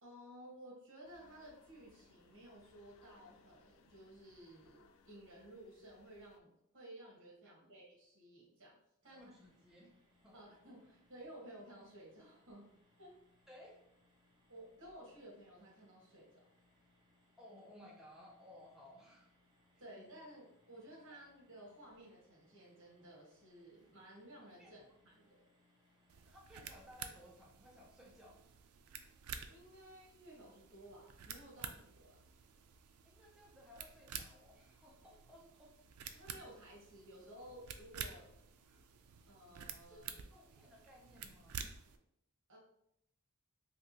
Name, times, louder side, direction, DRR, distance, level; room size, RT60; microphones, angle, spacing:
voice 1, 0.0-8.8 9.0-9.3 10.3-12.6 13.0-13.2 14.5-16.4 19.8-25.4 29.5-32.2 36.1-38.3 39.3-40.1 42.5-42.6, right 1 dB, 60° right, -3 dB, 1.3 m, -55 dB
sound 1, 1.0-6.4, left 5 dB, 60° left, 0.3 m, -68 dB
sound 2, 9.0-26.3, left 1 dB, 20° right, 0.8 m, -73 dB
voice 2, 9.1-10.0 10.2-10.4 13.5-13.8 17.4-19.3 19.9-20.0 21.1-21.2 24.6-24.7 26.2-28.5 33.0-35.7 38.6-38.8 39.9-41.6, left 1 dB, 5° right, -4 dB, 0.4 m, -59 dB
sound 3, 26.1-42.0, right 7 dB, 80° right, 0.3 m, -51 dB
3.4 x 2.8 x 2.7 m, 0.78 s
head